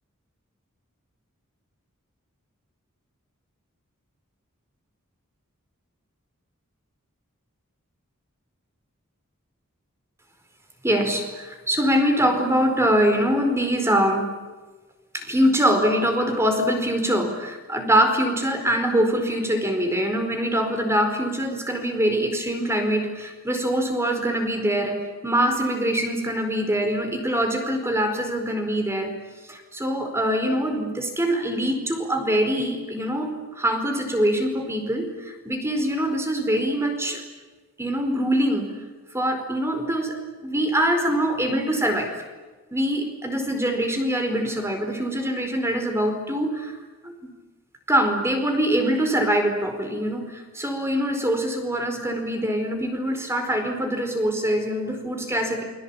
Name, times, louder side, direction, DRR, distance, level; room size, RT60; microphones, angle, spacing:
voice 1, 10.8-14.3 15.1-29.1 29.5-37.2 37.8-38.7 39.1-40.1 40.4-42.1 42.7-46.8 47.0-47.1 47.9-55.6, equal, 15° right, 5 dB, 4.6 m, -23 dB
29.0 x 23.0 x 8.7 m, 1.3 s
head